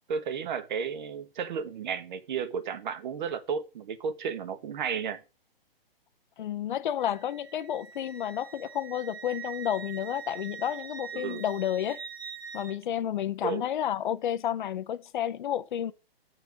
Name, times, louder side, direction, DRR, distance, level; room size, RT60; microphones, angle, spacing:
voice 1, 0.1-5.2 11.1-11.4 13.4-13.7, right 6 dB, 50° right, 1.2 m, -33 dB
voice 2, 6.4-12.0 12.5-15.9, left 10 dB, 55° left, 0.6 m, -31 dB
Wind instrument woodwind instrument, 7.0-12.8, right 7 dB, 80° right, 1.4 m, -43 dB
7.0 x 4.6 x 6.1 m
hypercardioid pair, 145°, 30 cm